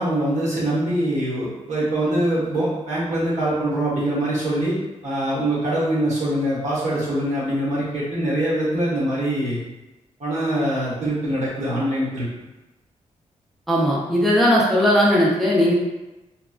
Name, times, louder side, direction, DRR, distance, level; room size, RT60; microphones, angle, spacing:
voice 1, 0.0-4.8 5.0-9.6 10.2-12.3, right 1 dB, 75° right, -8 dB, 1.3 m, -23 dB
voice 2, 13.7-15.7, equal, ahead, -5 dB, 0.5 m, -18 dB
2.9 x 2.2 x 2.4 m, 1.0 s
cardioid pair, 105°, 12 cm